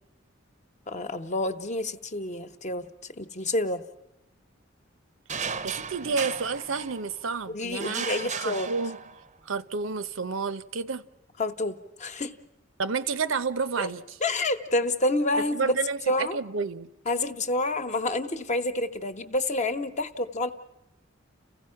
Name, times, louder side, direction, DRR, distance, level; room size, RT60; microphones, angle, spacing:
voice 1, 0.9-3.8 7.5-8.7 11.4-12.4 13.8-13.9 14.2-15.7 16.1-16.4 17.0-20.5, left 2 dB, 35° left, 1.0 m, -28 dB
sound 1, 5.3-7.3 7.8-9.4, right 6 dB, 35° right, 0.6 m, -35 dB
voice 2, 5.6-8.1 8.4-9.0 9.4-11.0 12.8-14.2 15.5-16.9, right 5 dB, 85° right, 0.7 m, -30 dB
30.0 x 15.5 x 5.8 m
head